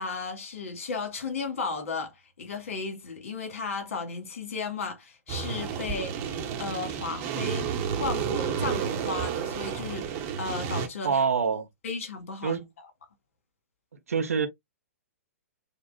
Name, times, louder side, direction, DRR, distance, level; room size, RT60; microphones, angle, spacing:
voice 1, 0.0-6.2 6.6-7.7 8.0-11.2 11.8-12.6, left 4 dB, 65° left, 2.1 m, -34 dB
sound 1, 5.3-10.9, right 7 dB, 35° right, 1.1 m, -31 dB
voice 2, 11.0-11.7 12.4-12.7 14.1-14.5, right 6 dB, 75° right, 0.9 m, -25 dB
6.6 x 2.4 x 2.3 m
hypercardioid pair, 120°, 8 cm